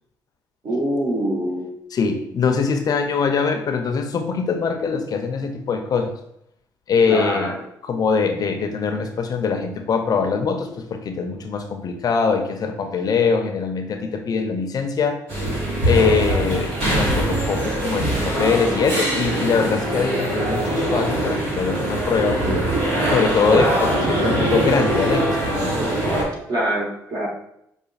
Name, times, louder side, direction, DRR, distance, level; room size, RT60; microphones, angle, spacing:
voice 1, 0.6-1.7 7.0-7.5 26.5-27.3, right 1 dB, 55° right, -2 dB, 1.4 m, -24 dB
voice 2, 1.9-6.1 6.9-7.5 7.8-15.2 15.8-22.4 23.1-26.1, left 5 dB, 55° left, 6 dB, 0.5 m, -22 dB
sound 1, 15.3-26.2, right 1 dB, 85° right, 1.4 m, -22 dB
4.9 x 2.5 x 2.4 m, 0.76 s
supercardioid pair, 55°, 8 cm